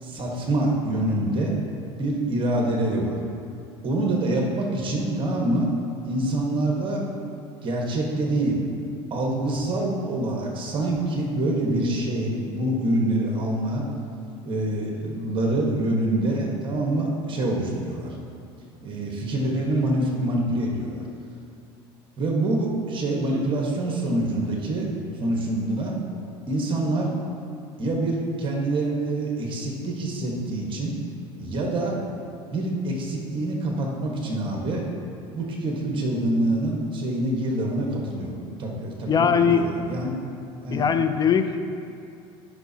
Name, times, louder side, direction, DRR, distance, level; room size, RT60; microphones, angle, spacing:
voice 1, 0.0-1.5 2.0-3.2 3.8-5.7 6.0-7.1 7.6-8.6 9.1-13.9 14.4-18.2 18.8-21.0 22.2-24.9 25.2-26.0 26.5-27.1 27.8-31.0 31.4-32.0 32.5-34.9 35.3-38.3 38.6-40.1 40.6-40.9, right 1 dB, 40° right, -1 dB, 1.4 m, -25 dB
voice 2, 39.1-39.9 40.7-41.6, left 6 dB, 30° left, 8 dB, 0.5 m, -21 dB
13.0 x 5.9 x 2.8 m, 2.4 s
supercardioid pair, 105°, 13 cm